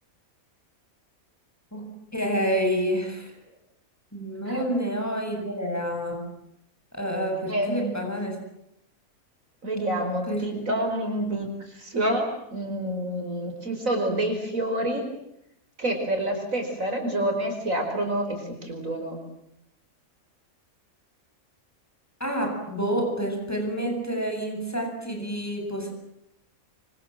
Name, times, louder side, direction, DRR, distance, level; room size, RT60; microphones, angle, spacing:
voice 1, 1.7-3.3 4.1-6.3 6.9-8.4 10.3-10.6 22.2-25.9, equal, 10° left, 3 dB, 8.1 m, -28 dB
voice 2, 7.5-8.1 9.6-15.1 15.8-19.2, right 1 dB, 70° right, 4 dB, 5.5 m, -28 dB
26.0 x 25.5 x 7.7 m, 0.79 s
omnidirectional pair, 1.5 m